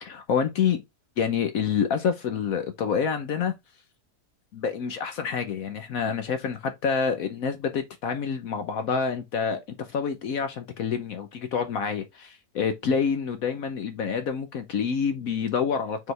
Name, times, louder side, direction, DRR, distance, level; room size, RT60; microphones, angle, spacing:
voice 1, 0.0-0.8 1.2-3.5 4.5-16.1, left 6 dB, 65° left, 1.2 m, -27 dB
7.0 x 4.1 x 3.3 m
omnidirectional pair, 1.7 m